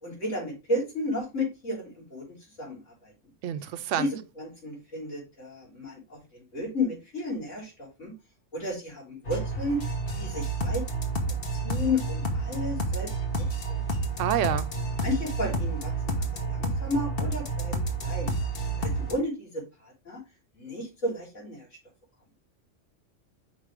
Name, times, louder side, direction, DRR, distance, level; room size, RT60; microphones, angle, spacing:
voice 1, 0.0-3.1 4.0-8.1 8.5-10.8 11.5-13.8 15.0-18.4 18.8-20.2 20.6-21.7, left 2 dB, 90° left, 3.6 m, -33 dB
voice 2, 3.4-4.1 14.2-14.7, right 10 dB, 85° right, 0.9 m, -27 dB
sound 1, 9.3-19.1, right 2 dB, 55° left, 1.3 m, -30 dB
5.8 x 5.0 x 3.3 m
omnidirectional pair, 1.2 m